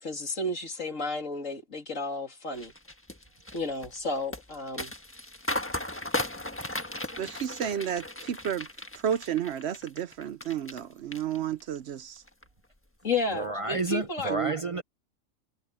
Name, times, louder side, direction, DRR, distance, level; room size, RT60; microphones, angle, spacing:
voice 1, 0.0-2.7 3.5-4.9 13.0-14.3, left 2 dB, 85° left, 3.2 m, -32 dB
sound 1, 2.6-10.8 11.1-11.8 12.2-12.4, left 1 dB, 10° left, 1.3 m, -36 dB
voice 2, 7.2-8.7 9.0-12.2 14.3-14.5, right 9 dB, 65° right, 0.9 m, -31 dB
voice 3, 13.3-14.8, right 2 dB, 35° right, 0.6 m, -30 dB
omnidirectional pair, 1.3 m